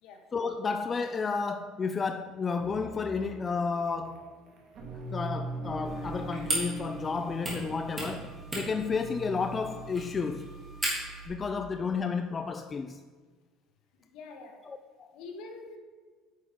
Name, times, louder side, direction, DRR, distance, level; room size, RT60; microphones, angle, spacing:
voice 1, 0.3-4.3 5.1-10.5 11.3-13.0 14.7-15.1, left 5 dB, 25° left, 0.3 m, -32 dB
sound 1, 2.5-10.8, right 2 dB, 50° right, 1.5 m, -42 dB
sound 2, 5.8-11.3, right 1 dB, 20° right, 2.7 m, -37 dB
voice 2, 14.1-14.5 15.1-15.8, left 3 dB, 70° left, 1.4 m, -44 dB
9.4 x 6.2 x 3.7 m
cardioid pair, 135°, 0 cm